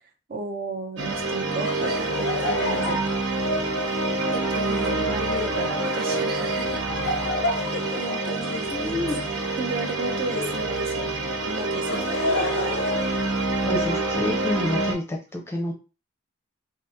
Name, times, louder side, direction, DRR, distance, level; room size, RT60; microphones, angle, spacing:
voice 1, 0.3-3.3 4.3-7.3 8.0-9.0 9.6-11.1 11.4-12.1, right 3 dB, 45° right, 3 dB, 0.6 m, -34 dB
sound 1, 1.0-14.9, right 2 dB, 80° right, 0.9 m, -27 dB
Laughter, 1.6-10.7 11.5-13.9, left 2 dB, 65° left, 0.5 m, -32 dB
voice 2, 8.7-9.2 13.6-15.7, left 1 dB, 10° left, 0 dB, 0.6 m, -28 dB
2.8 x 2.4 x 3.5 m, 0.32 s
head